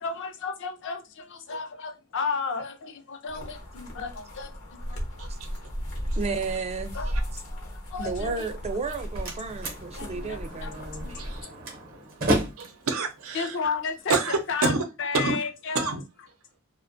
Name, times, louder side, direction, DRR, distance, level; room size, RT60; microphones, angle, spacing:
voice 1, 0.0-5.0 6.9-7.2 7.5-8.5 10.0-10.7 11.0-11.2 11.5-11.6 13.3-14.2 14.5-14.7 15.0-15.9, left 5 dB, 60° left, 0.5 m, -33 dB
sound 1, 3.3-11.4, equal, 85° left, 0.8 m, -35 dB
voice 2, 5.2-6.2 7.1-7.2 11.1-13.6 14.1-14.8 15.1-15.4 15.7-16.0, right 4 dB, 80° right, 0.6 m, -30 dB
voice 3, 6.1-7.0 8.0-11.1, right 4 dB, 30° right, 0.3 m, -32 dB
Slam, 8.7-14.6, right 1 dB, 45° right, 0.7 m, -33 dB
2.4 x 2.2 x 2.5 m
head